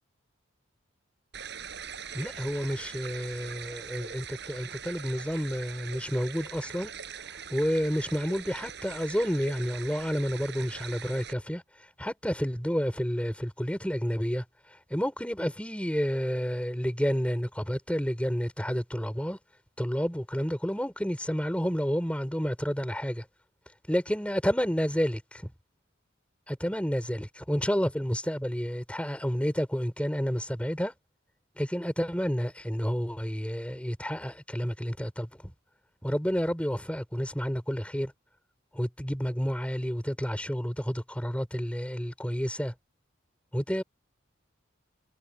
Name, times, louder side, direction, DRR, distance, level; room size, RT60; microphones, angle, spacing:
sound 1, 1.3-11.3, right 7 dB, 60° right, 7.5 m, -42 dB
voice 1, 2.1-6.9 7.5-11.6 12.0-14.4 14.9-19.4 19.8-23.2 23.9-25.5 26.5-30.9 31.6-35.5 36.0-38.1 38.7-42.7 43.5-43.8, equal, 5° left, 5.8 m, -30 dB
head